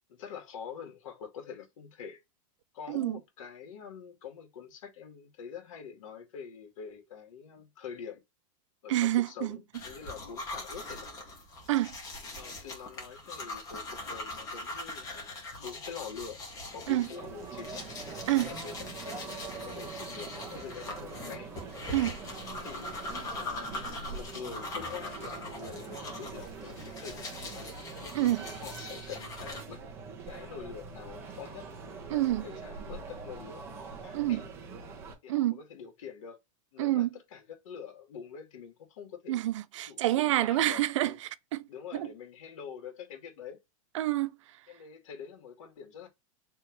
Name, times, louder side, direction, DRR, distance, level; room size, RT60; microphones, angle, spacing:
voice 1, 0.1-2.2 2.7-8.2 8.8-11.1 12.3-15.3 15.6-16.4 16.7-17.9 18.3-21.5 22.2-23.0 23.4-27.7 28.4-29.8 30.3-31.7 32.0-33.6 34.0-34.5 35.2-36.4 36.7-39.4 39.9-40.1 40.4-41.2 41.7-43.6 44.7-46.1, left 7 dB, 75° left, 2.4 m, -45 dB
voice 2, 2.9-3.2 8.9-9.6 11.7-11.9 16.9-17.1 18.3-18.5 21.9-22.2 28.1-28.4 32.1-32.4 34.1-34.4 35.3-35.6 36.8-37.1 39.3-42.1 43.9-44.6, right 15 dB, 65° right, 0.5 m, -28 dB
sound 1, 9.7-29.6, left 2 dB, 20° left, 1.5 m, -42 dB
sound 2, 17.1-35.1, right 4 dB, 15° right, 1.2 m, -43 dB
4.5 x 3.2 x 3.2 m
supercardioid pair, 180°, 17 cm